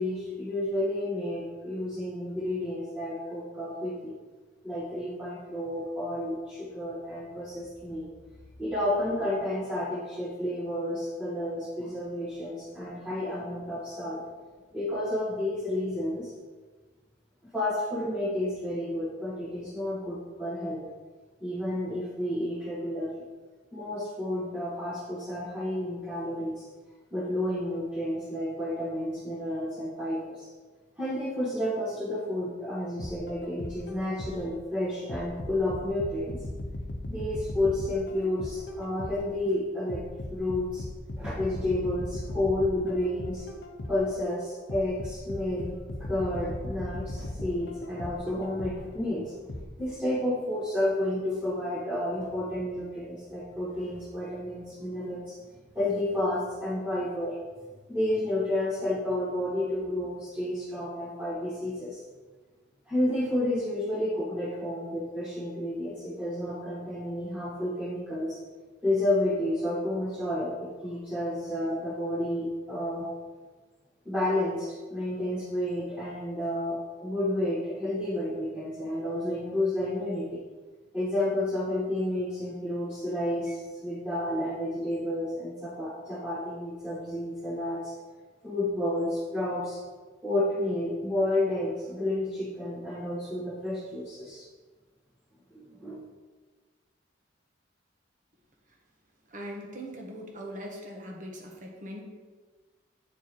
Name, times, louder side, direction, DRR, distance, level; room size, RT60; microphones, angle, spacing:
voice 1, 0.0-4.1 4.6-8.1 8.6-14.2 14.7-16.3 17.5-20.8 21.4-23.1 23.7-26.6 27.1-30.5 31.0-36.4 37.1-40.0 40.3-40.8 41.2-43.5 43.9-55.3 55.7-57.4 57.9-62.0 62.9-68.4 68.8-73.1 74.0-80.4 80.9-87.9 88.4-89.8 90.2-94.4 95.5-96.0, left 1 dB, 10° right, -9 dB, 1.3 m, -31 dB
sound 1, 33.0-34.6 35.1-39.4 39.9-44.2 44.7-49.0 49.5-49.6, left 1 dB, 70° left, 0.8 m, -38 dB
voice 2, 99.3-102.0, equal, 40° right, 0 dB, 1.3 m, -40 dB
8.2 x 4.5 x 4.5 m, 1.3 s
head